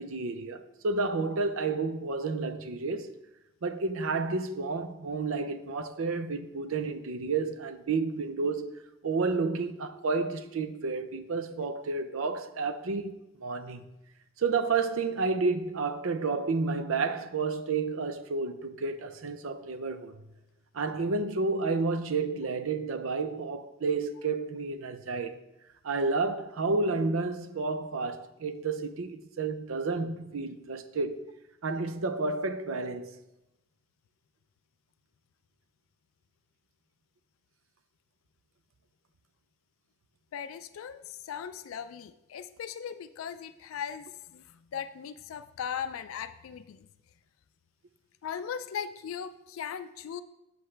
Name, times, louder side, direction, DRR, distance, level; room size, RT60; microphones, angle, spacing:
voice 1, 0.0-3.1 3.6-8.7 9.0-13.9 14.4-20.2 20.7-25.4 25.8-31.2 31.6-33.2, right 4 dB, 85° right, 0.6 m, -31 dB
voice 2, 40.3-44.4 44.7-46.8 48.2-50.2, left 8 dB, 85° left, 0.3 m, -38 dB
7.6 x 7.2 x 3.3 m
head